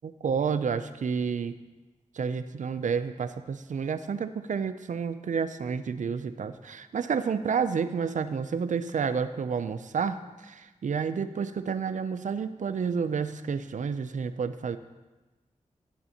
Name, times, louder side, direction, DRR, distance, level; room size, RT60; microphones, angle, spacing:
voice 1, 0.0-1.5 2.2-10.2 10.5-14.8, right 6 dB, 75° right, 12 dB, 0.5 m, -30 dB
18.0 x 6.9 x 2.9 m, 1.1 s
cardioid pair, 45°, 13 cm